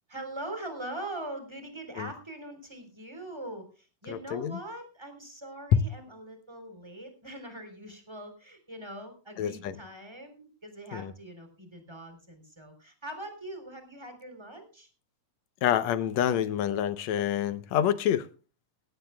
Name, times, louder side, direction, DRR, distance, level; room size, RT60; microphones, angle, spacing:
voice 1, 0.1-14.9, right 1 dB, 10° right, 6 dB, 3.4 m, -42 dB
voice 2, 4.1-4.6 5.7-5.8 9.4-9.8 10.9-11.1 15.6-18.3, left 9 dB, 70° left, 14 dB, 1.7 m, -27 dB
18.0 x 16.5 x 2.2 m, 0.34 s
omnidirectional pair, 3.8 m